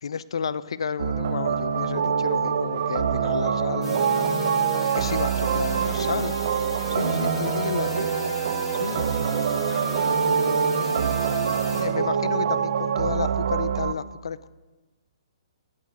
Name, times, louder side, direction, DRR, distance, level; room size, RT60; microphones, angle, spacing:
voice 1, 0.0-4.3 4.9-6.3 6.9-8.1 8.8-9.1 11.5-14.5, left 6 dB, 75° left, 15 dB, 0.5 m, -31 dB
sound 1, 1.0-13.9, right 7 dB, 65° right, 0.7 m, -25 dB
sound 2, 3.8-11.8, equal, 10° right, 4.6 m, -34 dB
voice 2, 5.5-6.2 9.3-11.0, left 1 dB, 10° left, -4 dB, 2.7 m, -46 dB
12.0 x 8.4 x 7.2 m, 1.2 s
hypercardioid pair, 135°, 3 cm